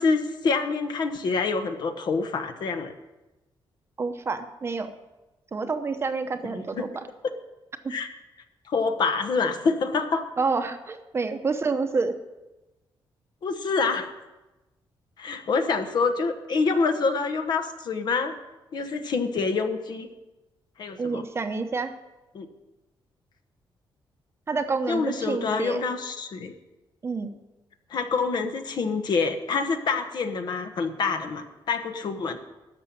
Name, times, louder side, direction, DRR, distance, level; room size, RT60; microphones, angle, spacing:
voice 1, 0.0-2.9 6.4-6.9 7.9-8.1 8.7-10.2 13.4-14.1 15.2-18.3 18.7-20.1 20.8-21.2 22.3-22.5 24.9-26.5 27.9-32.4, left 4 dB, 55° left, 7 dB, 1.2 m, -26 dB
voice 2, 4.0-4.9 5.5-7.1 7.8-7.9 10.4-12.1 21.0-21.9 24.5-25.8 27.0-27.3, right 4 dB, 30° right, 8 dB, 0.9 m, -28 dB
13.0 x 6.1 x 8.6 m, 1.1 s
cardioid pair, 135°, 9 cm